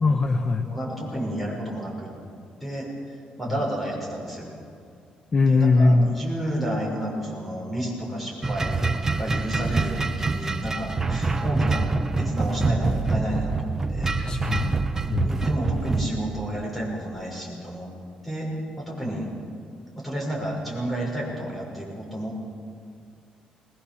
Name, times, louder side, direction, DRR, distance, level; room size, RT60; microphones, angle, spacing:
voice 1, 0.0-0.6 5.3-6.1 14.2-14.7 15.1-15.3, left 3 dB, 30° left, 5 dB, 0.9 m, -20 dB
voice 2, 0.6-2.1 2.6-4.5 5.4-11.9 12.2-14.1 15.2-17.9 18.2-19.3 19.9-22.4, right 1 dB, ahead, -3 dB, 6.2 m, -31 dB
sound 1, 8.4-16.1, right 3 dB, 20° right, 0.9 m, -25 dB
21.5 x 20.0 x 7.1 m, 2.4 s
cardioid pair, 150°, 3 cm